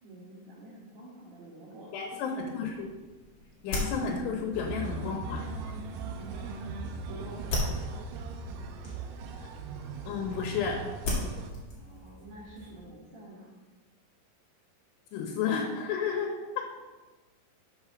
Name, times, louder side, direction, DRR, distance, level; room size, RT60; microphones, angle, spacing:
voice 1, 0.0-1.9 6.2-7.6 11.7-13.5, right 1 dB, 50° right, -10 dB, 3.0 m, -47 dB
voice 2, 1.9-2.9 3.6-5.5 10.0-10.8 15.1-16.7, left 6 dB, 90° left, 1 dB, 3.1 m, -32 dB
sound 1, 2.6-12.9, left 2 dB, 45° left, 2.5 m, -39 dB
sound 2, 4.5-11.5, right 4 dB, 80° right, 2.3 m, -39 dB
6.5 x 5.8 x 5.9 m, 1.2 s
omnidirectional pair, 4.7 m